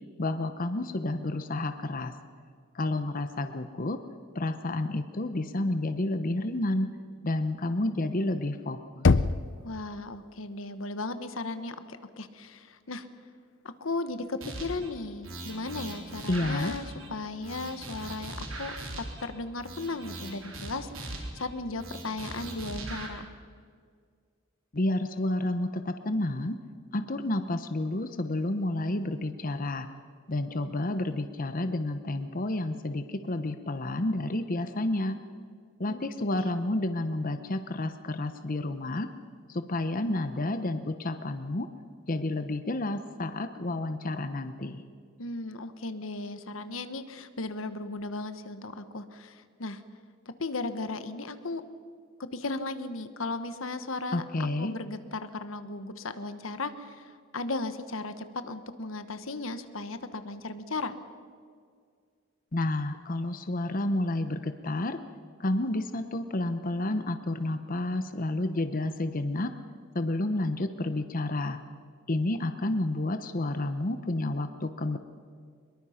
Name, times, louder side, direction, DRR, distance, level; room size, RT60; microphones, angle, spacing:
voice 1, 0.2-2.1 2.7-4.0 4.3-6.9 7.2-9.1 16.3-16.8 24.7-26.6 26.9-29.9 30.3-35.2 35.8-39.1 39.5-41.7 42.1-44.8 54.1-54.7 62.5-65.0 65.4-69.5 69.9-71.6 72.1-75.0, left 1 dB, 45° left, 9 dB, 0.9 m, -30 dB
Knock, 9.0-10.0, left 4 dB, 65° left, 0.6 m, -24 dB
voice 2, 9.6-13.1 13.8-23.3 35.9-36.1 36.3-36.6 45.2-49.8 50.4-51.6 52.2-61.0, left 3 dB, 80° left, 11 dB, 1.3 m, -36 dB
sound 1, 14.4-14.9 15.2-17.1 17.4-19.3 19.6-21.5 21.8-23.1, right 2 dB, 85° right, 3.9 m, -40 dB
24.0 x 22.0 x 5.8 m, 2.1 s
head